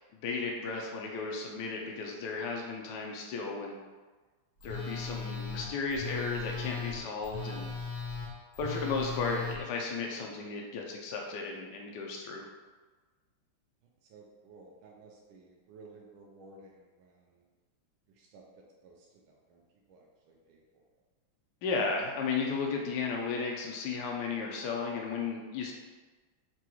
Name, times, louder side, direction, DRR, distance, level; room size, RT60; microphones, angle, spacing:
voice 1, 0.1-3.8 4.6-7.7 8.6-12.5 21.6-25.7, left 4 dB, 75° left, 0 dB, 1.0 m, -34 dB
Telephone, 4.6-9.6, left 4 dB, 50° left, 0.8 m, -38 dB
voice 2, 14.0-17.4 18.1-19.6 19.9-20.6, right 3 dB, 75° right, -1 dB, 1.3 m, -55 dB
6.0 x 2.3 x 3.0 m, 1.3 s
omnidirectional pair, 2.3 m